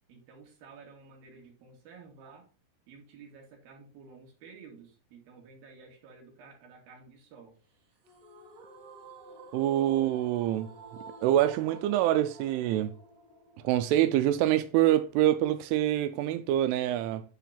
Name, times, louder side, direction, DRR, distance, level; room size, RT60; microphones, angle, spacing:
voice 1, 0.1-2.5 2.9-7.6, right 5 dB, 65° right, 3.7 m, -52 dB
sound 1, 8.0-15.1, right 3 dB, 45° right, 3.8 m, -50 dB
voice 2, 9.5-10.7 11.2-12.9 13.6-17.2, right 13 dB, 90° right, 2.6 m, -25 dB
9.4 x 3.8 x 5.7 m
omnidirectional pair, 4.6 m